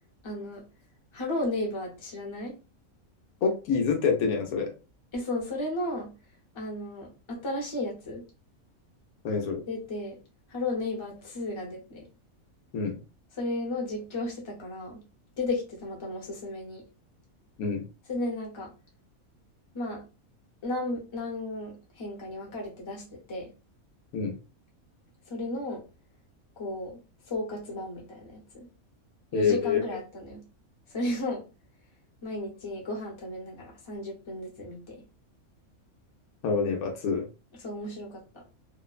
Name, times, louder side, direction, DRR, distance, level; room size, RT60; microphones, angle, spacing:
voice 1, 0.2-0.6 1.1-2.5 5.1-6.1 6.5-8.2 9.7-10.2 10.5-12.1 13.4-15.0 15.4-16.8 18.1-18.7 19.7-20.0 20.6-23.5 25.3-25.8 26.6-27.0 27.3-28.7 29.3-30.4 30.9-31.4 32.2-35.0 37.6-38.4, left 2 dB, 25° left, -2 dB, 0.7 m, -34 dB
voice 2, 3.4-4.7 9.2-9.6 12.7-13.0 17.6-17.8 24.1-24.3 29.3-29.8 36.4-37.3, left 5 dB, 85° left, 3 dB, 1.2 m, -26 dB
2.9 x 2.0 x 2.4 m, 0.31 s
omnidirectional pair, 1.5 m